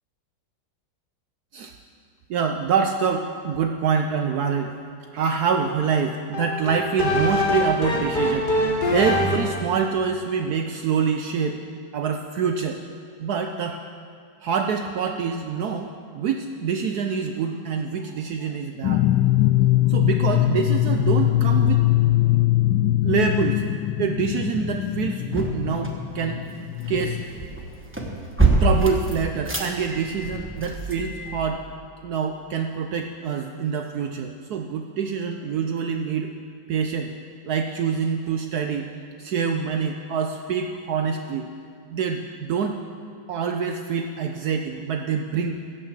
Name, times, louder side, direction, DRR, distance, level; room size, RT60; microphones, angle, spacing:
voice 1, 2.3-4.7 5.1-11.6 11.9-12.8 13.2-13.8 14.4-19.1 19.9-21.9 23.0-23.6 24.0-26.4 26.9-27.2 28.6-31.6 32.0-36.3 36.7-37.1 37.4-38.9 39.2-41.5 41.9-42.8 43.3-45.5, right 6 dB, 70° right, 5 dB, 1.0 m, -26 dB
sound 1, 6.3-9.7, left 1 dB, 30° left, 1.3 m, -24 dB
sound 2, 18.8-27.2, left 14 dB, 85° left, 1.3 m, -21 dB
sound 3, 20.5-20.7 21.2-22.4 25.0-31.5, right 2 dB, 10° right, 0.8 m, -27 dB
16.0 x 6.7 x 7.3 m, 2.3 s
omnidirectional pair, 2.0 m